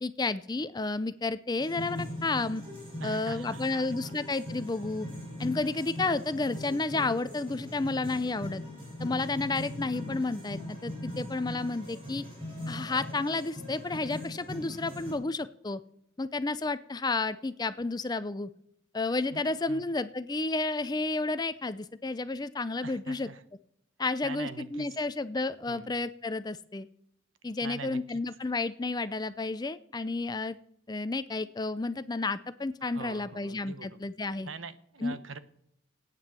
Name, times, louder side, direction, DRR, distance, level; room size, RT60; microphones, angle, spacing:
voice 1, 0.0-2.6 3.0-5.1 5.4-8.6 9.0-12.2 12.7-15.8 16.2-18.5 18.9-23.3 24.0-26.9 27.4-30.6 30.9-34.5 35.0-35.1, left 3 dB, 20° left, 14 dB, 0.4 m, -31 dB
sound 1, 1.6-15.1, left 1 dB, 25° right, 6.7 m, -40 dB
voice 2, 3.0-4.1 19.3-19.4 19.7-19.8 22.8-23.4 24.2-24.9 25.7-25.9 27.6-28.2 32.8-34.0 34.4-35.4, right 4 dB, 75° right, 13 dB, 1.0 m, -43 dB
14.5 x 9.2 x 7.5 m, 0.74 s
head